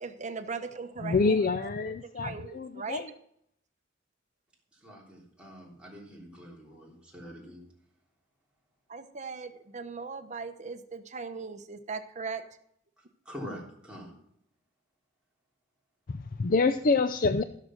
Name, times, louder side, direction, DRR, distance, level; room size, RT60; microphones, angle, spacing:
voice 1, 0.0-1.4 1.6-3.2 8.9-12.4, right 4 dB, 35° right, 8 dB, 1.0 m, -39 dB
voice 2, 1.0-3.1 16.1-17.4, left 4 dB, 45° left, 11 dB, 0.4 m, -27 dB
voice 3, 4.7-7.6 13.0-14.1, equal, 5° right, -4 dB, 3.5 m, -45 dB
15.5 x 6.6 x 6.3 m, 0.73 s
head